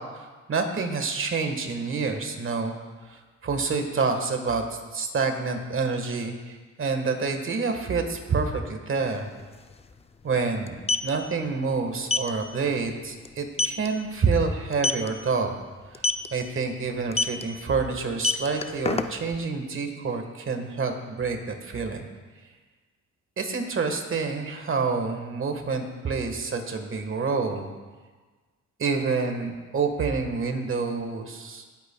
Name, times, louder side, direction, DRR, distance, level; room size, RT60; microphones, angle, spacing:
voice 1, 0.0-2.7 3.1-9.3 10.2-15.6 16.3-22.1 23.4-27.7 28.8-31.6, right 4 dB, 45° right, 5 dB, 1.5 m, -28 dB
sound 1, 9.1-9.2 9.4-9.6 10.6-11.1 12.1-12.3 12.7-12.9 13.2-13.3 13.6-13.9 14.7-15.1 15.9-16.3 17.1-17.4 18.1-19.4, left 4 dB, 20° left, 0.5 m, -24 dB
18.5 x 8.6 x 2.3 m, 1.4 s
cardioid pair, 90°, 30 cm